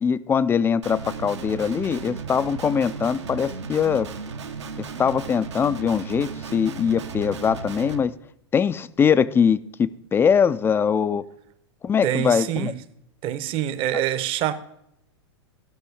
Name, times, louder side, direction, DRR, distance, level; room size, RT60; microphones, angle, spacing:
voice 1, 0.0-4.1 5.0-8.1 8.5-11.2 11.8-12.7, left 7 dB, 15° left, 0.4 m, -22 dB
Guitar, 0.8-8.0, right 5 dB, 75° right, 1.2 m, -35 dB
voice 2, 12.0-12.8 13.2-14.5, right 12 dB, 35° right, 0.9 m, -25 dB
14.5 x 6.1 x 4.8 m
hypercardioid pair, 105°, 15 cm